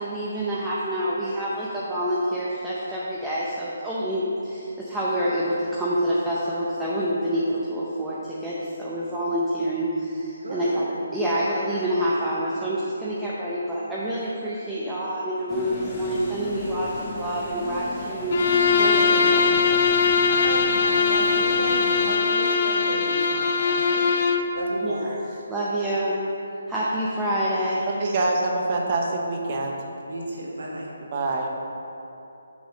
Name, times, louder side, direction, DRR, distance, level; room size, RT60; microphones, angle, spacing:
voice 1, 0.0-19.8 24.8-25.2 25.5-26.2 26.7-27.9, equal, 5° right, -8 dB, 0.6 m, -27 dB
voice 2, 10.4-10.8 20.3-24.1 24.5-25.0 30.1-30.9, right 1 dB, 80° right, -3 dB, 1.7 m, -33 dB
sound 1, 15.5-22.2, left 2 dB, 20° left, 0.9 m, -35 dB
Bowed string instrument, 18.3-24.5, left 5 dB, 45° left, 0.5 m, -21 dB
voice 3, 27.9-29.7 31.0-31.5, right 2 dB, 35° right, 0 dB, 0.9 m, -25 dB
6.2 x 5.5 x 5.1 m, 2.9 s
hypercardioid pair, 165°, 0 cm